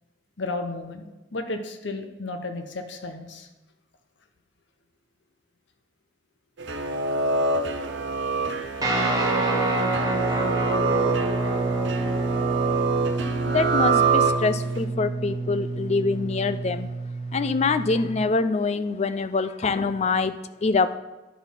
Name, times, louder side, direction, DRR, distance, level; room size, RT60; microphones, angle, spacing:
voice 1, 0.4-3.5, left 2 dB, 65° left, 6 dB, 0.8 m, -33 dB
sound 1, 6.6-14.8, right 4 dB, 65° right, 0.8 m, -26 dB
Guitar, 8.8-18.2, right 2 dB, 20° right, 1.6 m, -27 dB
voice 2, 13.5-16.9 17.3-21.0, left 4 dB, 35° left, 12 dB, 0.4 m, -25 dB
10.5 x 4.1 x 5.6 m, 1.1 s
head